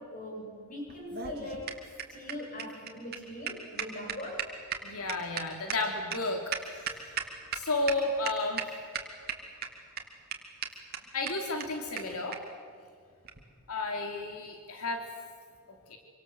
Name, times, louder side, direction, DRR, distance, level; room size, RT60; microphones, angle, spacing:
voice 1, 0.0-1.8 2.1-4.5, left 1 dB, 35° left, 0 dB, 7.8 m, -41 dB
sound 1, 0.9-7.6 7.9-8.0 8.2-8.7 8.9-9.7 10.0-10.1 10.3-10.4 10.6-10.7 10.9-11.0 11.3-11.4 11.6-11.7 12.0-12.1 12.3-12.4 13.2-13.4, right 7 dB, 45° right, 2.8 m, -35 dB
voice 2, 4.8-6.4 6.7-6.9 7.5-8.7 11.1-12.4 13.7-15.0 15.9-16.0, left 2 dB, 85° left, 3 dB, 3.0 m, -32 dB
27.0 x 25.5 x 7.9 m, 2.1 s
head